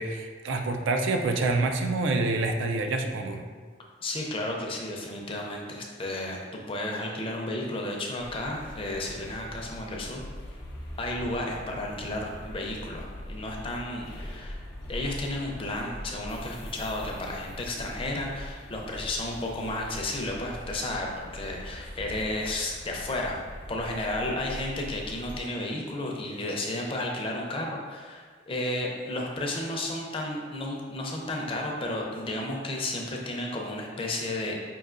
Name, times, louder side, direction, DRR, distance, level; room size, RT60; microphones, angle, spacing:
voice 1, 0.0-3.4, right 3 dB, 75° right, 5 dB, 0.4 m, -27 dB
voice 2, 4.0-10.2 11.0-14.6 14.9-23.4 23.7-34.6, left 1 dB, 30° left, 0 dB, 0.5 m, -33 dB
sound 1, 8.2-25.5, left 1 dB, 80° left, 0.6 m, -42 dB
5.4 x 2.6 x 2.5 m, 1.5 s
head